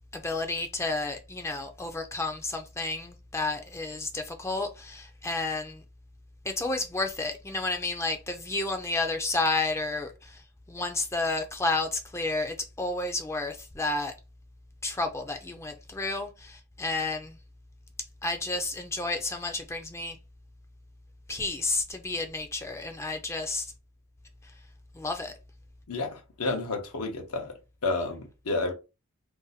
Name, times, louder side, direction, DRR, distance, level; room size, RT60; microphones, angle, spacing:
voice 1, 0.1-5.8 6.5-10.1 10.7-14.1 14.8-17.4 18.2-20.2 21.3-23.7 25.0-25.3, left 2 dB, 15° left, 0.4 m, -31 dB
voice 2, 25.9-27.5 27.8-28.7, left 3 dB, 80° left, 0.7 m, -30 dB
2.6 x 2.1 x 3.9 m
head